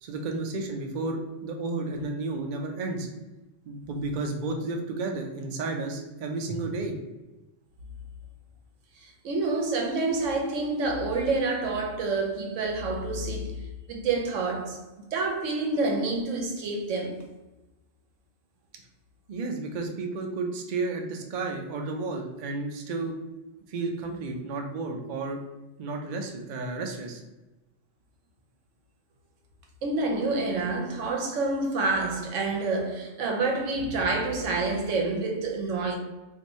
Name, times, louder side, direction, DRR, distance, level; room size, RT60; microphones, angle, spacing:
voice 1, 0.0-3.1 3.7-6.9 19.3-23.1 23.7-25.4 25.8-27.2, right 3 dB, 55° right, 0.6 m, -32 dB
voice 2, 9.0-17.2 29.8-36.0, right 3 dB, 85° right, 1.0 m, -28 dB
2.6 x 2.6 x 4.1 m
omnidirectional pair, 1.3 m